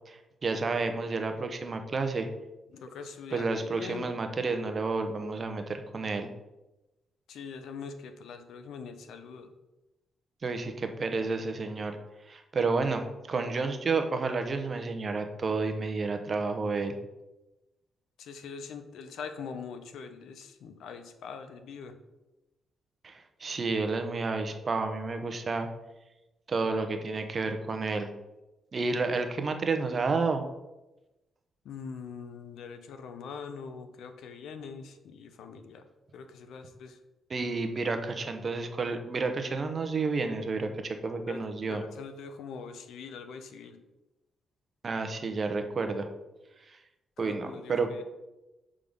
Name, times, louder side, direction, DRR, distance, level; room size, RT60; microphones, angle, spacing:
voice 1, 0.1-2.3 3.3-6.3 10.4-12.0 12.3-16.9 23.0-25.7 26.5-28.1 28.7-30.4 37.3-41.8 44.8-46.1 47.2-47.9, right 3 dB, 40° right, 7 dB, 0.8 m, -30 dB
voice 2, 2.7-4.1 7.3-9.5 18.2-22.0 31.6-35.9 36.1-37.0 41.3-43.8 47.2-48.0, left 5 dB, 85° left, 8 dB, 0.7 m, -43 dB
6.3 x 3.7 x 5.2 m, 1.0 s
cardioid pair, 110°, 0 cm